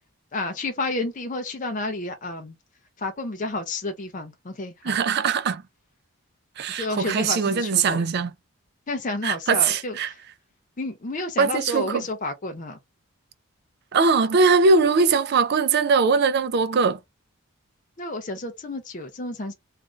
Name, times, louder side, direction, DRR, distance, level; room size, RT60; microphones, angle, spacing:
voice 1, 0.3-2.5 3.0-5.0 6.7-8.0 8.9-10.2 10.8-12.8 18.0-19.5, left 2 dB, 35° left, 0.5 m, -30 dB
voice 2, 4.8-5.6 6.6-8.3 9.2-10.1 11.4-12.0 13.9-17.0, right 4 dB, 45° right, 0.3 m, -21 dB
2.5 x 2.5 x 3.1 m
head